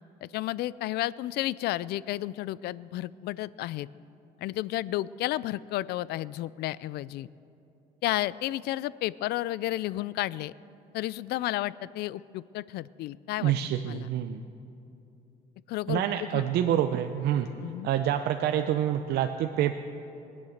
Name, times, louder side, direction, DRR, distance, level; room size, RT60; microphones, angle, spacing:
voice 1, 0.2-3.9 4.4-7.3 8.0-10.5 10.9-13.5 13.9-14.1 15.7-16.4 17.6-17.9, left 15 dB, 75° left, 20 dB, 0.4 m, -32 dB
voice 2, 13.4-14.4 15.9-17.5 17.8-19.8, right 11 dB, 75° right, 7 dB, 0.6 m, -27 dB
23.0 x 8.6 x 6.5 m, 2.8 s
cardioid pair, 110°, 17 cm